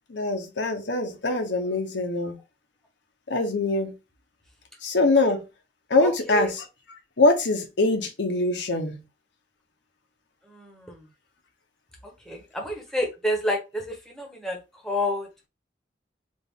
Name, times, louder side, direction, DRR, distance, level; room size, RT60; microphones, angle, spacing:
voice 1, 0.1-2.4 3.3-3.9 4.8-5.4 5.9-6.6 7.2-9.0, left 2 dB, 75° left, 0.8 m, -23 dB
voice 2, 6.0-6.5 10.5-10.7 12.0-14.6 14.8-15.3, left 1 dB, 5° left, 0.9 m, -29 dB
4.2 x 2.5 x 3.5 m
head